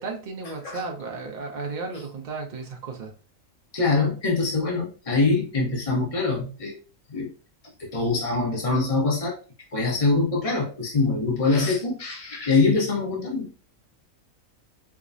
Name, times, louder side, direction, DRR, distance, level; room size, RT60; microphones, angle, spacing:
voice 1, 0.0-3.1, right 4 dB, 40° right, 0.8 m, -34 dB
voice 2, 3.7-6.7 7.1-7.3 7.8-9.4 9.7-13.6, left 3 dB, 30° left, 1.0 m, -24 dB
4.7 x 2.2 x 2.5 m
omnidirectional pair, 1.4 m